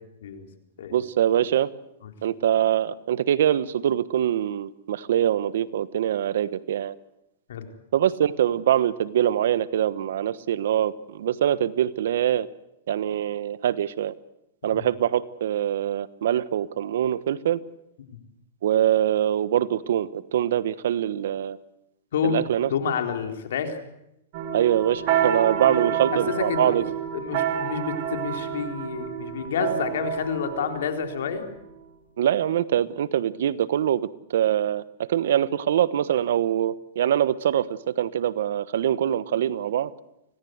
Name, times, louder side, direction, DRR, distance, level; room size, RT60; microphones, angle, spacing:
voice 1, 0.9-1.7 2.2-6.9 7.9-12.5 12.9-14.1 14.6-17.6 18.6-21.6 22.2-22.7 24.5-26.8 32.2-37.7 38.0-39.9, right 10 dB, 75° right, 16 dB, 1.2 m, -24 dB
voice 2, 22.1-23.8 26.3-26.8 27.1-31.5, left 6 dB, 75° left, 5 dB, 4.1 m, -29 dB
sound 1, 24.3-31.8, right 9 dB, 45° right, 3.1 m, -29 dB
26.0 x 18.0 x 8.1 m, 0.84 s
hypercardioid pair, 145°, 0 cm